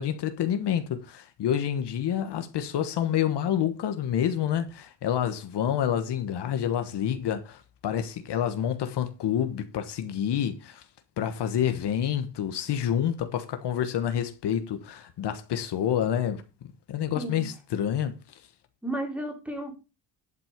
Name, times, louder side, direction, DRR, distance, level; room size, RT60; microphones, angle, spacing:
voice 1, 0.0-10.8 11.2-16.4 16.9-18.2, left 9 dB, 65° left, 1.3 m, -28 dB
voice 2, 18.8-19.7, right 1 dB, 5° right, 2.7 m, -33 dB
11.0 x 6.1 x 5.1 m
cardioid pair, 155°, 44 cm